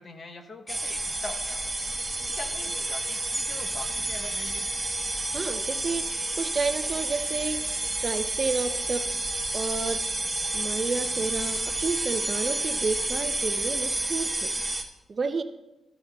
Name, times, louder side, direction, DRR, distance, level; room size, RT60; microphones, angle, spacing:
voice 1, 0.0-4.7, left 2 dB, 40° left, 6 dB, 1.0 m, -43 dB
sound 1, 0.7-14.8, right 2 dB, 10° right, 1.1 m, -30 dB
voice 2, 5.3-10.0 10.5-14.5 15.1-15.4, right 4 dB, 35° right, 9 dB, 0.5 m, -31 dB
13.0 x 13.0 x 2.3 m, 1.0 s
cardioid pair, 125°, 0 cm